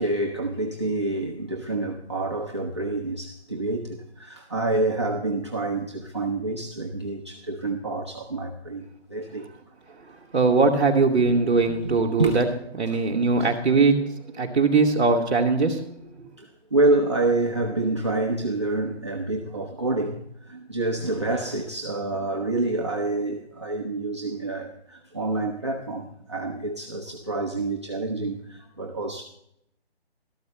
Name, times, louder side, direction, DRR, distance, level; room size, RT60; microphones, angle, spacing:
voice 1, 0.0-9.5 11.2-11.3 11.7-12.4 12.9-13.0 16.4-29.2, right 2 dB, 25° right, 0.6 m, -27 dB
voice 2, 10.3-12.4 12.8-14.0 14.3-15.8 16.2-16.3, right 4 dB, 10° right, 1.0 m, -20 dB
13.0 x 13.0 x 3.2 m
hypercardioid pair, 180°, 32 cm